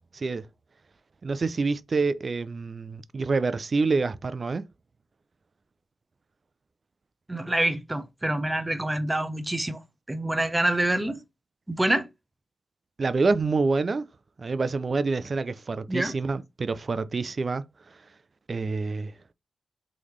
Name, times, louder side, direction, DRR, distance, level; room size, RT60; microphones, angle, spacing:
voice 1, 0.1-0.5 1.2-4.6 13.0-14.1 14.4-17.6 18.5-19.1, right 4 dB, 50° right, 0.4 m, -27 dB
voice 2, 7.3-9.8 10.1-11.2 11.7-12.1 15.9-16.1, right 1 dB, 20° right, 0.8 m, -26 dB
3.8 x 3.2 x 3.1 m
supercardioid pair, 45°, 0 cm